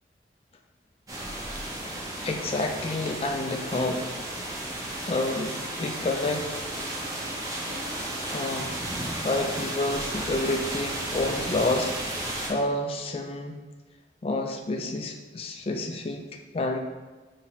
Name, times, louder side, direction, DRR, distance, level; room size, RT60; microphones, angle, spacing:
sound 1, 1.1-12.5, right 1 dB, 20° right, 0.6 m, -33 dB
voice 1, 2.2-4.1 5.1-6.5 8.3-8.9 9.2-13.6 14.2-16.2 16.5-16.8, left 2 dB, 30° left, 4 dB, 0.3 m, -29 dB
sound 2, 2.2-13.0, equal, 60° right, 0.7 m, -48 dB
5.8 x 2.8 x 2.8 m, 1.3 s
head